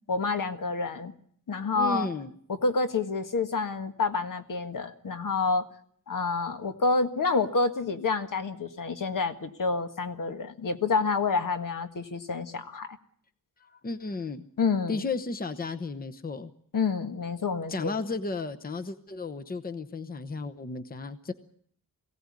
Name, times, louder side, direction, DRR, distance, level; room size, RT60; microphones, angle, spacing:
voice 1, 0.1-1.1 1.5-2.1 2.6-5.6 6.1-12.9 14.6-15.0 16.7-18.0, left 4 dB, 65° left, 8 dB, 1.7 m, -28 dB
voice 2, 1.7-2.3 13.6-14.5 14.9-16.5 17.7-21.3, left 3 dB, 25° left, 9 dB, 0.9 m, -34 dB
22.0 x 16.5 x 9.8 m, 0.63 s
wide cardioid pair, 165°, 35 cm